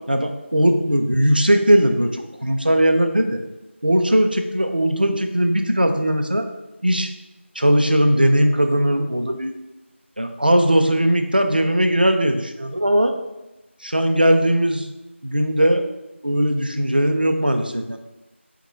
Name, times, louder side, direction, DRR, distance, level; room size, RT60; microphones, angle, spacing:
voice 1, 0.1-3.4 3.8-6.5 6.8-7.1 7.6-9.5 10.2-13.1 13.8-14.9 15.2-15.8 16.2-18.0, equal, 45° right, 5 dB, 0.4 m, -19 dB
4.5 x 2.2 x 4.1 m, 1.0 s
figure-of-eight pair, 180°, 7 cm